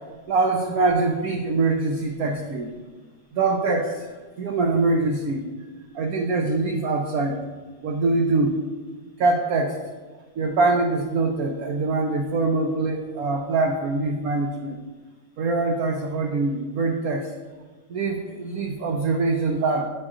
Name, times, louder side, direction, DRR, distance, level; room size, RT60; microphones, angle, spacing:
voice 1, 0.3-2.8 3.3-4.1 4.4-5.5 5.9-7.4 7.8-8.6 9.2-9.8 10.4-14.8 15.4-17.3 17.9-19.9, right 3 dB, 85° right, 2 dB, 0.8 m, -23 dB
9.5 x 4.4 x 2.4 m, 1.4 s
omnidirectional pair, 2.1 m